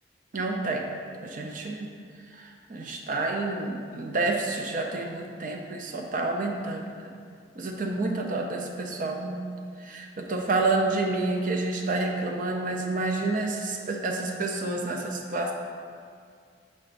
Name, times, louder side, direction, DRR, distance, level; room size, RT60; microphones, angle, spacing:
voice 1, 0.3-0.9 1.2-1.9 2.3-7.2 7.6-9.5 9.8-15.5, right 2 dB, 45° right, 1 dB, 0.5 m, -29 dB
6.0 x 3.3 x 5.2 m, 2.2 s
head